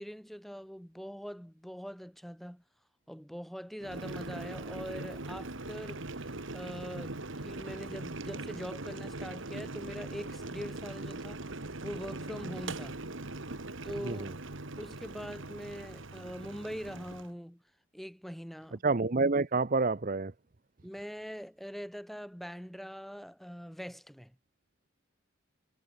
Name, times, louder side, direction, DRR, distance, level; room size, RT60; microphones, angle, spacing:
voice 1, 0.0-2.6 3.1-11.4 11.8-13.0 13.8-14.3 14.8-17.6 17.9-18.8 20.8-24.4, equal, ahead, 7.1 m, -43 dB
Boiling, 3.8-17.3, right 2 dB, 70° right, 1.9 m, -41 dB
voice 2, 14.0-14.3 18.8-20.3, right 3 dB, 40° right, 0.7 m, -28 dB
head